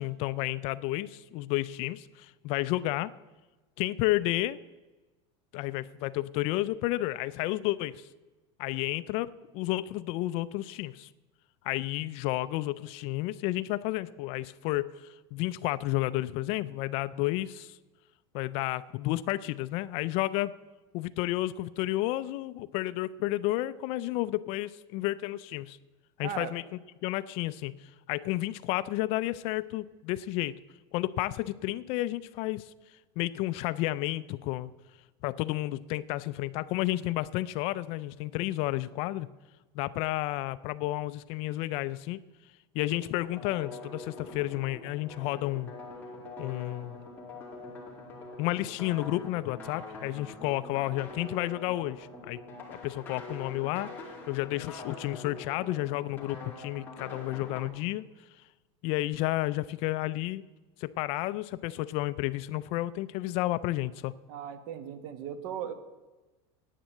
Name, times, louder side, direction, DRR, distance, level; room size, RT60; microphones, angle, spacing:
voice 1, 0.0-3.1 3.8-4.6 5.5-8.1 8.6-11.1 11.6-17.8 18.3-20.5 20.9-25.8 26.2-26.6 27.0-27.7 28.1-30.6 30.9-32.7 33.2-34.7 35.2-39.3 39.7-42.2 42.7-45.7 46.4-47.0 48.4-52.4 52.7-53.9 54.3-58.0 58.8-60.4 60.8-64.1, left 17 dB, 45° left, 17 dB, 0.4 m, -31 dB
voice 2, 26.2-26.5 64.3-65.7, right 9 dB, 50° right, 11 dB, 1.3 m, -37 dB
sound 1, 42.9-57.7, left 2 dB, 15° left, 2.4 m, -45 dB
10.0 x 9.0 x 7.6 m, 1.2 s
supercardioid pair, 165°, 15 cm